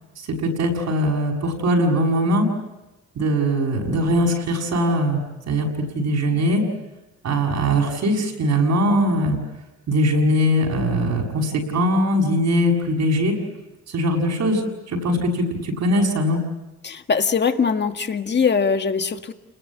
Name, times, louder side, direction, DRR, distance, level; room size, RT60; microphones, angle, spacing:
voice 1, 0.3-2.5 3.1-5.7 5.9-6.6 7.2-9.4 9.9-13.4 13.9-14.6 14.9-16.4, equal, 65° right, 2 dB, 6.8 m, -21 dB
voice 2, 16.8-19.3, left 5 dB, 35° left, 7 dB, 1.8 m, -21 dB
29.5 x 21.0 x 8.7 m, 1.0 s
cardioid pair, 90°, 30 cm